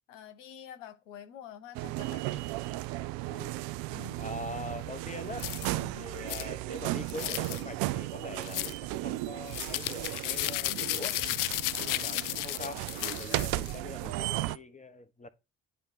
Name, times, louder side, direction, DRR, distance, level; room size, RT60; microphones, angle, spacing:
voice 1, 0.1-2.5 3.9-4.2 5.2-5.3 5.8-6.1 13.2-13.5, left 8 dB, 85° left, 0.9 m, -48 dB
sound 1, 1.7-14.6, right 17 dB, 70° right, 0.5 m, -35 dB
voice 2, 4.2-5.5 6.0-11.2 11.8-15.3, left 2 dB, 20° left, 1.4 m, -43 dB
sound 2, 5.4-5.7 6.3-6.5 7.1-7.6 8.4-8.8 9.5-13.7, left 18 dB, 60° left, 0.5 m, -34 dB
9.5 x 3.2 x 5.7 m
hypercardioid pair, 40°, 37 cm